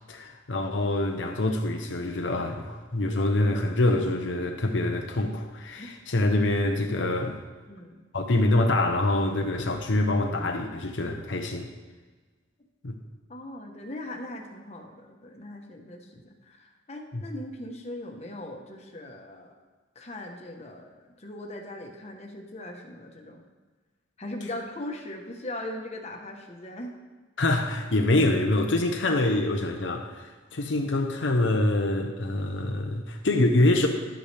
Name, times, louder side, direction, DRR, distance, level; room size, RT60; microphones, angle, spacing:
voice 1, 0.1-7.4 8.1-11.7 12.8-13.0 17.1-17.2 27.4-33.9, left 2 dB, 80° left, 3 dB, 0.8 m, -25 dB
voice 2, 7.7-8.0 13.3-19.5 19.9-23.4 24.2-26.9, left 1 dB, 35° left, 1 dB, 1.1 m, -39 dB
11.5 x 8.1 x 3.4 m, 1.3 s
head